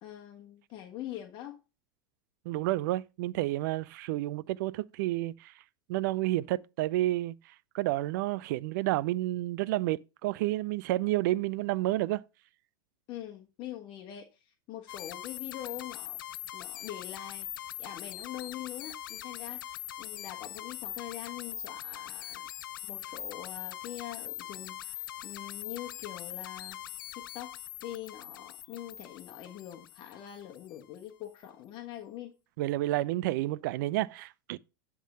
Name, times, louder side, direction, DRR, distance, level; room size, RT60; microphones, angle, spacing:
voice 1, 0.0-1.6 13.1-16.2 16.5-22.5 22.8-26.8 27.3-32.3, left 12 dB, 45° left, 1.3 m, -44 dB
voice 2, 2.5-5.5 5.9-12.2 32.6-34.6, right 16 dB, 65° right, 0.4 m, -30 dB
sound 1, 14.9-30.7, left 13 dB, 80° left, 0.4 m, -42 dB
10.0 x 3.7 x 5.5 m
hypercardioid pair, 100°, 11 cm